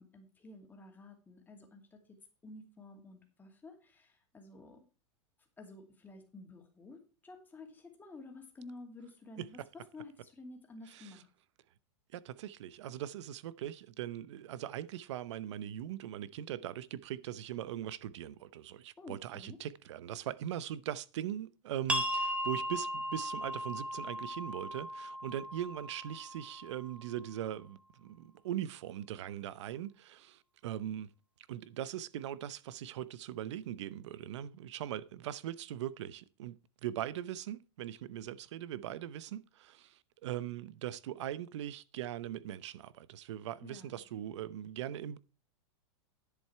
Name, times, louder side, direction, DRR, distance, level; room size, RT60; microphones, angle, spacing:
voice 1, 0.0-2.2 2.4-4.8 5.6-11.3 19.0-19.6 43.6-44.0, left 2 dB, 10° left, 2.5 m, -52 dB
voice 2, 10.9-11.2 12.1-31.1 31.5-45.2, right 11 dB, 70° right, 0.8 m, -40 dB
sound 1, 21.9-27.3, equal, 10° right, 1.4 m, -37 dB
10.5 x 7.7 x 4.6 m
supercardioid pair, 140°, 15 cm